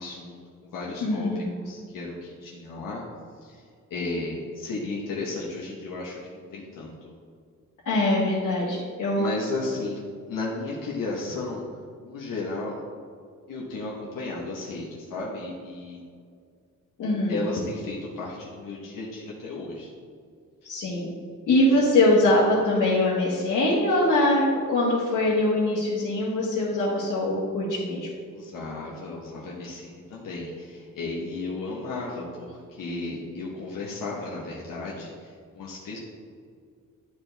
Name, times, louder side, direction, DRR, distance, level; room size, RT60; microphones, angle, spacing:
voice 1, 0.0-3.0 3.4-3.6 3.9-7.1 9.2-10.0 10.3-11.6 12.0-12.8 13.5-16.0 17.3-19.9 21.7-21.8 28.3-36.0, left 3 dB, 85° left, -3 dB, 1.1 m, -34 dB
voice 2, 1.0-1.5 7.8-9.4 17.0-17.4 20.6-21.1 21.5-28.1, left 1 dB, 65° left, -7 dB, 1.6 m, -23 dB
11.0 x 4.5 x 3.4 m, 2.2 s
wide cardioid pair, 155°, 33 cm